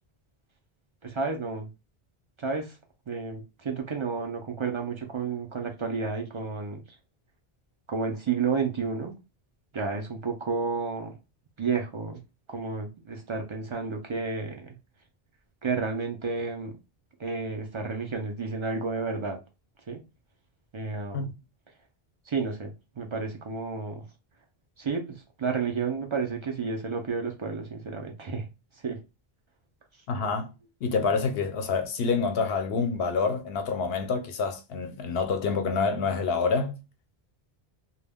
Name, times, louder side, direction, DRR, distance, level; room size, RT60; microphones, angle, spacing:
voice 1, 1.0-1.7 2.4-2.8 3.1-6.8 7.9-9.2 9.7-11.1 11.6-12.2 12.5-14.8 15.6-16.7 17.2-19.4 19.9-20.0 20.7-21.3 22.3-24.0 24.8-29.0 30.2-30.3, right 4 dB, 50° right, 0.3 m, -31 dB
voice 2, 30.1-30.5 30.8-36.8, left 4 dB, 75° left, 0.8 m, -27 dB
2.2 x 2.1 x 3.4 m
omnidirectional pair, 1.0 m